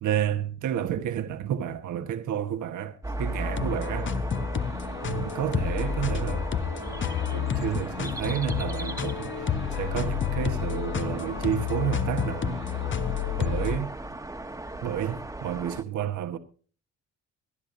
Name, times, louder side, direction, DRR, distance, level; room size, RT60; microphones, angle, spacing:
voice 1, 0.0-4.1 5.0-6.4 7.3-12.6 13.4-13.9 14.8-16.4, right 10 dB, 75° right, 1.4 m, -30 dB
sound 1, 3.0-15.8, right 1 dB, 10° right, 1.2 m, -36 dB
sound 2, 3.4-13.8, left 8 dB, 40° left, 0.9 m, -30 dB
23.5 x 10.5 x 2.7 m
cardioid pair, 90°, 30 cm